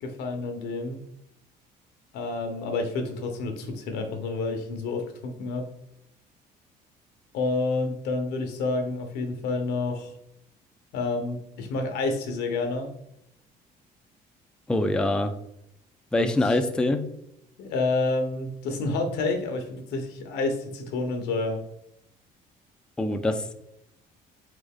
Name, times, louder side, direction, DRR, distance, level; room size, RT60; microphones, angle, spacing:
voice 1, 0.0-1.0 2.1-5.7 7.3-10.1 10.9-12.9 16.2-16.5 17.6-21.6, left 3 dB, 85° left, 6 dB, 0.8 m, -29 dB
voice 2, 14.7-15.3 16.1-17.0 23.0-23.6, left 1 dB, 5° left, 7 dB, 0.3 m, -24 dB
3.8 x 3.4 x 3.6 m, 0.79 s
cardioid pair, 110°, 17 cm